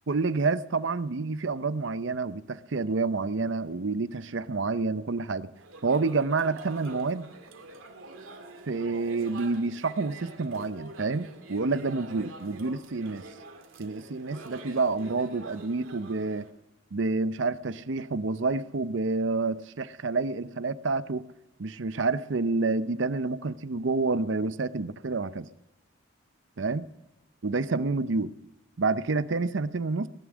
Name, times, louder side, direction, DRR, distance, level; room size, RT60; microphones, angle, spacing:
voice 1, 0.1-5.5 5.8-7.3 8.7-13.3 13.8-16.5 16.9-21.2 21.6-25.5 26.6-26.9 27.4-28.3 28.8-30.1, right 3 dB, 65° right, 14 dB, 0.6 m, -28 dB
sound 1, 5.5-16.5, right 2 dB, 85° right, 2.2 m, -46 dB
18.0 x 11.0 x 6.2 m, 0.93 s
head